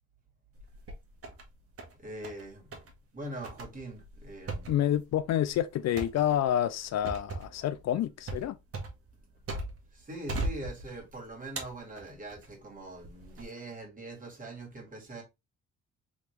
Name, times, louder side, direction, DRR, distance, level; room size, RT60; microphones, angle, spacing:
sound 1, 0.5-1.4 1.8-2.4 2.7-2.9 3.4-9.9 10.3-11.1 11.6-12.5 13.0-13.4, right 2 dB, 50° right, 1.5 m, -38 dB
voice 1, 2.0-2.8 3.1-4.7 9.9-15.2, right 2 dB, 25° right, 2.3 m, -43 dB
voice 2, 4.7-8.6, left 11 dB, 60° left, 0.4 m, -28 dB
3.6 x 3.4 x 3.3 m
cardioid pair, 90°, 30 cm